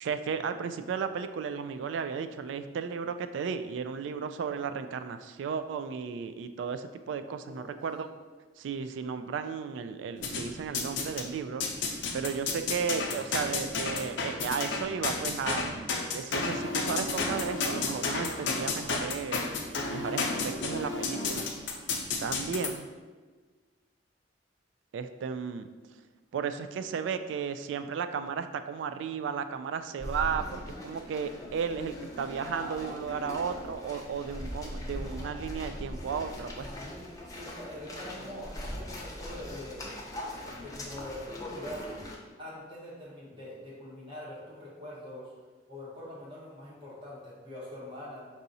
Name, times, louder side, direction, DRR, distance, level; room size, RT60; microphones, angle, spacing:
voice 1, 0.0-8.1 8.6-11.7 12.1-19.4 19.9-21.5 22.2-22.9 24.9-25.7 26.3-36.7, right 6 dB, 85° right, 11 dB, 0.3 m, -34 dB
voice 2, 7.4-7.8 36.6-37.0 37.3-39.9 40.6-41.9 42.4-45.3 45.7-48.3, left 1 dB, 30° right, -6 dB, 1.4 m, -44 dB
sound 1, 10.2-11.3 11.6-22.7, left 4 dB, 80° left, 0.6 m, -31 dB
sound 2, 30.0-42.2, left 1 dB, 20° left, 0.6 m, -40 dB
4.7 x 2.7 x 4.0 m, 1.4 s
head